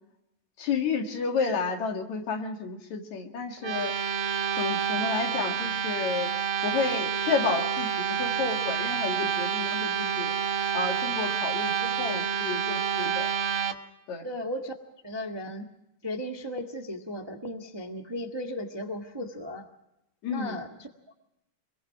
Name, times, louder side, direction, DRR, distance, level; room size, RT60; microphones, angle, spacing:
voice 1, 0.6-3.9 4.5-6.3 6.6-7.9 8.2-10.3 10.7-13.3 14.1-14.2 20.2-20.6, left 5 dB, 65° left, 3 dB, 3.4 m, -31 dB
sound 1, 3.6-13.7, right 7 dB, 55° right, 1.6 m, -28 dB
voice 2, 14.2-14.7 15.0-15.7 16.0-19.7 20.3-21.1, left 1 dB, 20° right, 3 dB, 0.6 m, -36 dB
25.5 x 22.5 x 4.8 m, 0.87 s
omnidirectional pair, 3.5 m